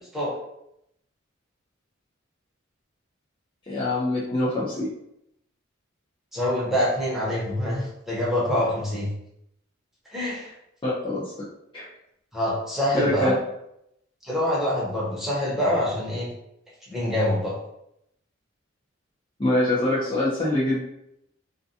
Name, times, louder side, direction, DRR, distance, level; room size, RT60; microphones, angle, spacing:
voice 1, 3.7-4.9 10.8-11.2 11.7-11.9 12.9-13.3 19.4-20.9, left 1 dB, 25° left, -7 dB, 0.5 m, -24 dB
voice 2, 6.3-9.1 10.1-10.5 12.3-13.3 14.2-16.3 16.9-17.5, left 1 dB, ahead, -8 dB, 0.8 m, -25 dB
2.4 x 2.2 x 2.7 m, 0.79 s
head